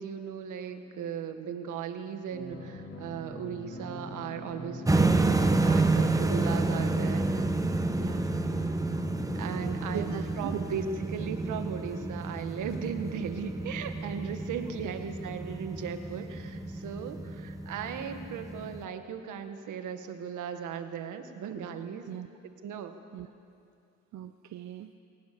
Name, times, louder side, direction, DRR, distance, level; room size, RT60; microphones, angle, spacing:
voice 1, 0.0-7.4 9.3-22.1 22.6-22.9, right 7 dB, 80° right, 7 dB, 1.7 m, -37 dB
sound 1, 2.3-9.9, equal, 40° left, 5.1 m, -42 dB
sound 2, 4.9-18.8, right 2 dB, 10° right, 1.2 m, -29 dB
voice 2, 8.0-8.3 9.9-10.7 14.8-14.9 22.1-22.3 23.1-23.3 24.1-24.9, right 11 dB, 65° right, 8 dB, 0.8 m, -39 dB
22.5 x 19.5 x 6.9 m, 2.5 s
cardioid pair, 90°, 30 cm